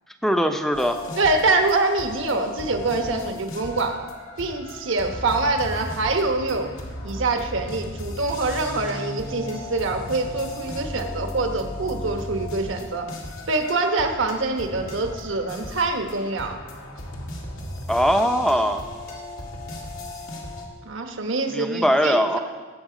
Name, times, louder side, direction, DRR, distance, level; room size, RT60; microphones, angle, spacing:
voice 1, 0.2-1.0 17.9-18.8 21.5-22.4, equal, ahead, 6 dB, 0.7 m, -21 dB
sound 1, 0.7-20.7, left 1 dB, 80° left, 2.1 m, -36 dB
voice 2, 1.2-4.1 4.4-6.7 7.0-13.1 13.5-16.6 20.8-22.4, right 3 dB, 70° right, 4 dB, 1.2 m, -25 dB
18.5 x 7.6 x 5.1 m, 1.4 s
head